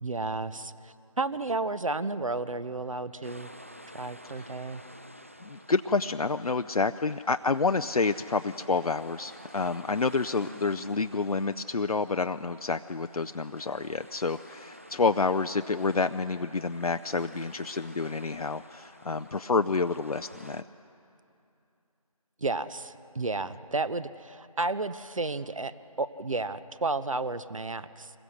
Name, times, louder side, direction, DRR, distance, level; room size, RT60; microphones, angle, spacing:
voice 1, 0.0-3.5 3.9-4.8 22.4-25.7 26.0-28.1, right 3 dB, 60° right, 14 dB, 0.8 m, -32 dB
sound 1, 3.2-20.6, equal, 20° right, 0.4 m, -50 dB
voice 2, 5.4-20.6, left 4 dB, 70° left, 9 dB, 0.5 m, -28 dB
26.0 x 21.5 x 6.3 m, 2.7 s
figure-of-eight pair, 160°, 19 cm